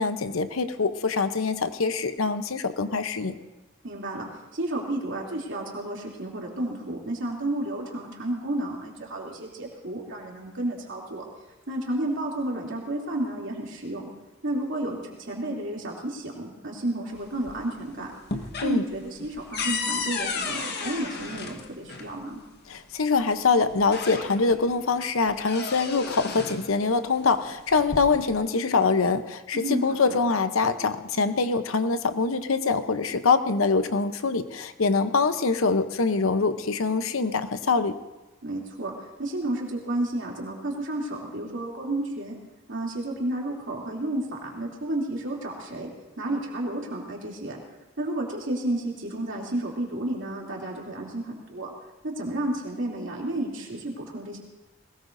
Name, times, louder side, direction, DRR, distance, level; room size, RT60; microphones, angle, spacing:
voice 1, 0.0-3.3 18.6-18.8 22.7-38.0, left 4 dB, 80° left, 10 dB, 0.8 m, -24 dB
voice 2, 3.8-4.3 4.5-11.2 11.7-14.0 14.4-18.1 18.6-22.4 29.5-30.2 38.4-42.4 42.7-45.9 46.2-47.6 48.0-51.7 52.0-54.4, right 1 dB, 65° right, -2 dB, 2.9 m, -31 dB
sound 1, 17.1-17.8 18.1-22.1 23.2-23.3 23.7-24.6 25.0-26.7 27.6-28.4, left 4 dB, 55° left, 1.3 m, -33 dB
20.5 x 19.0 x 2.6 m, 1.1 s
head